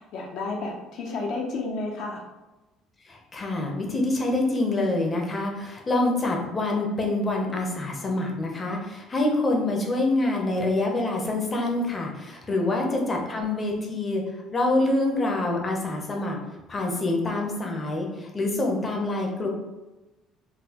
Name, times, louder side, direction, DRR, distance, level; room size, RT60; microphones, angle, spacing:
voice 1, 0.0-2.2 12.5-13.2, left 3 dB, 60° left, 0 dB, 0.5 m, -32 dB
voice 2, 3.0-14.2 14.5-16.4 16.7-19.5, left 2 dB, 20° left, 1 dB, 0.6 m, -26 dB
3.9 x 2.3 x 2.8 m, 1.1 s
cardioid pair, 150°, 0 cm